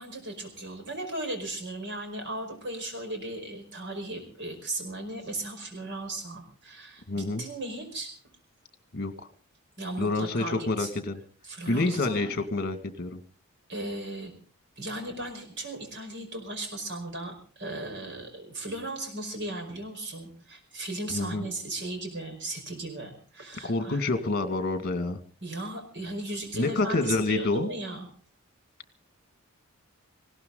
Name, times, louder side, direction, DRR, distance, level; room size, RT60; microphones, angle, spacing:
voice 1, 0.0-8.1 9.8-10.9 11.4-12.3 13.7-14.3 14.8-24.0 25.4-28.0, right 2 dB, 55° right, 6 dB, 5.1 m, -36 dB
voice 2, 7.1-7.4 8.9-9.1 10.0-11.2 11.7-13.2 21.1-21.5 23.6-25.2 26.5-27.7, left 2 dB, 45° left, 8 dB, 2.0 m, -28 dB
19.5 x 17.0 x 3.9 m, 0.42 s
head